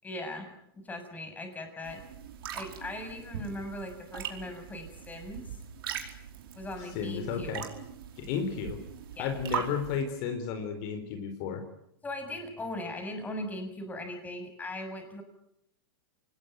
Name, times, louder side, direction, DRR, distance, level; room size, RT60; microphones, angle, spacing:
voice 1, 0.0-0.5 0.7-2.0 2.5-5.6 6.6-7.6 9.2-9.3 12.0-15.2, left 1 dB, 15° left, 6 dB, 6.9 m, -39 dB
sound 1, 1.8-10.0, right 9 dB, 75° right, 5.0 m, -41 dB
voice 2, 6.8-7.7 8.2-8.8 9.2-11.6, left 6 dB, 50° left, 7 dB, 4.0 m, -33 dB
27.0 x 20.0 x 9.3 m, 0.80 s
hypercardioid pair, 130°, 12 cm